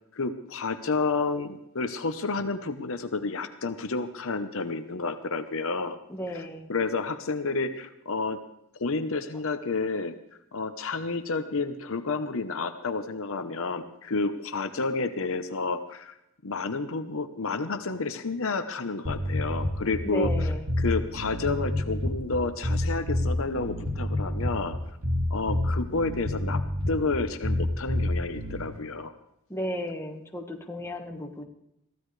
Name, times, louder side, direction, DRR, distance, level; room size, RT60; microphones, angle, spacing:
voice 1, 0.1-6.0 6.3-6.4 6.7-8.4 8.8-10.2 10.5-16.2 16.4-20.5 20.8-24.8 25.3-26.6 26.9-29.1, left 3 dB, 65° left, 9 dB, 0.9 m, -30 dB
voice 2, 6.1-6.7 20.0-20.7 29.5-31.5, equal, 10° left, 2 dB, 1.5 m, -34 dB
sound 1, 19.0-28.7, left 1 dB, 75° right, 2.3 m, -28 dB
22.5 x 15.0 x 3.3 m, 0.79 s
head